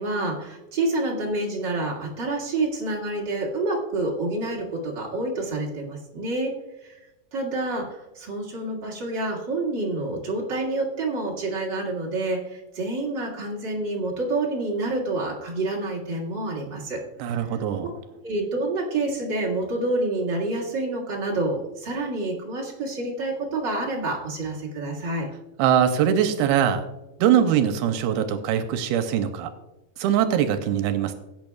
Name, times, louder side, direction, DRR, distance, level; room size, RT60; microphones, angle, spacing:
voice 1, 0.0-6.5 6.8-6.9 7.3-17.0 17.3-17.4 18.2-25.3, right 2 dB, 40° right, -4 dB, 1.8 m, -28 dB
voice 2, 17.2-17.9 25.6-26.8 27.2-29.5 30.0-31.1, right 9 dB, 85° right, 8 dB, 2.6 m, -22 dB
17.0 x 8.8 x 2.3 m, 1.0 s
omnidirectional pair, 4.5 m